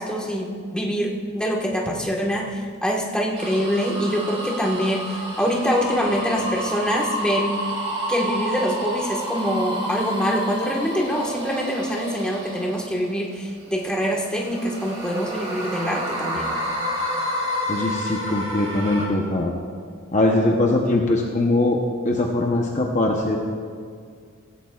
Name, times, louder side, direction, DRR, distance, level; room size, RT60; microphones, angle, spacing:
voice 1, 0.0-7.6 8.1-16.5, equal, 5° left, -2 dB, 1.4 m, -24 dB
sound 1, 3.3-13.3 13.8-19.1, equal, 25° right, 2.3 m, -30 dB
voice 2, 17.7-19.5 20.1-21.8 22.0-23.4, left 2 dB, 35° left, 1 dB, 0.8 m, -21 dB
16.5 x 16.0 x 2.4 m, 2.1 s
head